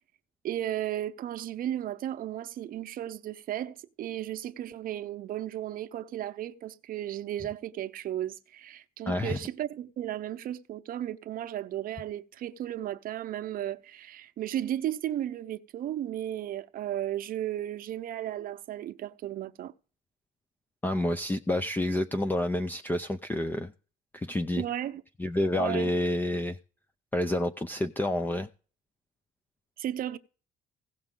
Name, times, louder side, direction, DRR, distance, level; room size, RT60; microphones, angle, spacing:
voice 1, 0.4-19.7 24.6-25.0 25.6-25.9 29.8-30.2, right 12 dB, 55° right, 0.7 m, -34 dB
voice 2, 9.1-9.4 20.8-23.7 24.1-24.6 25.2-26.6 27.1-28.5, left 1 dB, 10° left, 0.4 m, -28 dB
16.5 x 6.0 x 3.7 m
cardioid pair, 110°, 17 cm